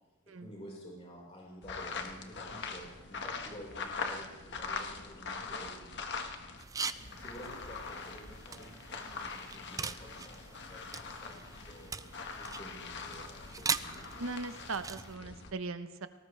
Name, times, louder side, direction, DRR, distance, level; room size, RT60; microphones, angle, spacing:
voice 1, 0.3-12.0 12.3-14.1 15.2-15.3, equal, 30° left, -3 dB, 4.8 m, -51 dB
sound 1, 1.6-6.6 6.9-15.5, left 4 dB, 60° left, 1.5 m, -42 dB
sound 2, 6.6-15.2, right 5 dB, 15° right, 0.4 m, -41 dB
voice 2, 14.2-16.1, right 3 dB, 75° right, 10 dB, 1.0 m, -39 dB
19.5 x 18.5 x 3.3 m, 1.2 s
head